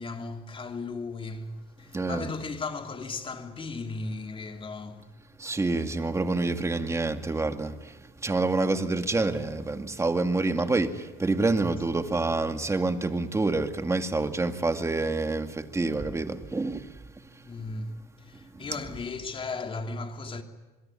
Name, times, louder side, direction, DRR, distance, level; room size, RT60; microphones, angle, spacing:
voice 1, 0.0-5.1 17.4-20.4, left 3 dB, 30° left, 3.0 m, -36 dB
voice 2, 1.9-2.3 5.4-17.5 18.5-18.7, right 3 dB, 15° right, 2.2 m, -28 dB
26.0 x 22.5 x 10.0 m
cardioid pair, 110°, 17 cm